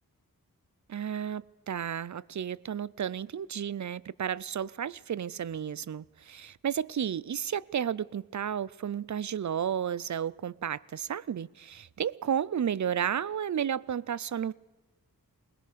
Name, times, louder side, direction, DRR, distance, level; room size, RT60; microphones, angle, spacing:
voice 1, 0.9-14.5, right 8 dB, 55° right, 0.6 m, -32 dB
21.0 x 20.0 x 6.7 m
wide cardioid pair, 65°, 36 cm